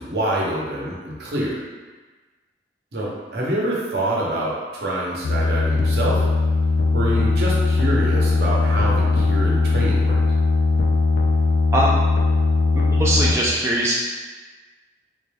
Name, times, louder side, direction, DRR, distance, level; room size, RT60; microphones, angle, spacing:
voice 1, 0.0-1.6 2.9-6.2 6.9-10.2, right 1 dB, 65° right, -4 dB, 0.8 m, -26 dB
sound 1, 5.2-13.3, left 3 dB, 85° left, 0.4 m, -19 dB
voice 2, 12.7-13.9, right 1 dB, 15° right, -5 dB, 0.3 m, -21 dB
3.6 x 2.2 x 3.3 m, 1.3 s
head